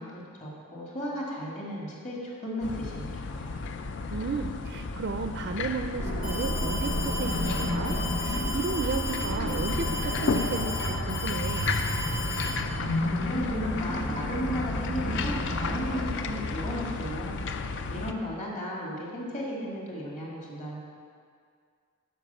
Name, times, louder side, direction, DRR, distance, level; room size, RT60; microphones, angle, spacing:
voice 1, 0.0-3.6 13.0-17.4 17.9-20.8, equal, 30° left, -4 dB, 2.0 m, -35 dB
sound 1, 2.6-18.1, left 4 dB, 55° left, 0.5 m, -33 dB
voice 2, 4.1-11.7, right 4 dB, 45° right, 6 dB, 0.4 m, -34 dB
sound 2, 6.0-16.2, equal, 90° left, 1.7 m, -32 dB
Alarm, 6.2-12.5, left 2 dB, 70° left, 2.5 m, -35 dB
10.0 x 5.4 x 6.9 m, 2.1 s
head